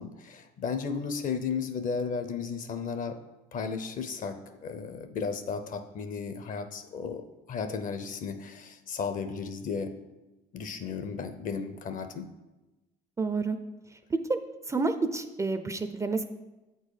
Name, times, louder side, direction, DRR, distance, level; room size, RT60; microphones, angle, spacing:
voice 1, 0.0-3.2 3.5-7.2 7.5-9.9 10.5-12.3, left 5 dB, 55° left, 9 dB, 0.7 m, -34 dB
voice 2, 13.2-13.6 14.3-14.4 14.7-16.2, right 3 dB, 20° right, 9 dB, 0.4 m, -29 dB
8.1 x 4.6 x 4.9 m, 1.1 s
cardioid pair, 110°, 17 cm